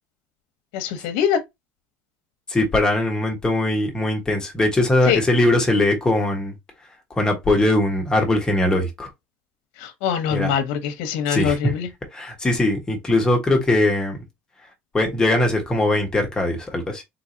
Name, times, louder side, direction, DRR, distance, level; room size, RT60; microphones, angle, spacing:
voice 1, 0.7-1.4 5.1-5.2 9.8-11.9, left 8 dB, 90° left, 0.8 m, -23 dB
voice 2, 2.5-6.5 7.2-9.1 10.3-10.5 11.3-11.7 12.1-14.2 14.9-17.0, left 1 dB, 15° left, 1.2 m, -20 dB
4.0 x 2.7 x 2.6 m
cardioid pair, 140°, 5 cm